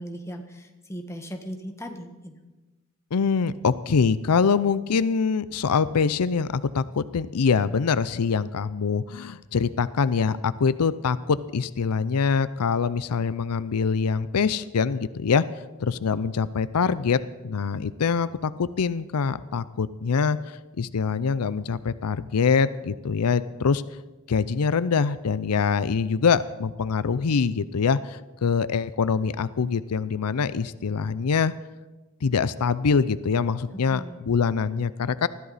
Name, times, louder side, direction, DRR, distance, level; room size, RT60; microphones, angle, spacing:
voice 1, 0.0-2.3 33.9-34.2, equal, 15° left, 4 dB, 1.5 m, -38 dB
voice 2, 3.1-15.4 15.8-20.4 20.8-23.8 24.3-31.5 32.2-35.3, left 5 dB, 90° left, 16 dB, 0.5 m, -24 dB
20.5 x 14.0 x 4.1 m, 1.1 s
head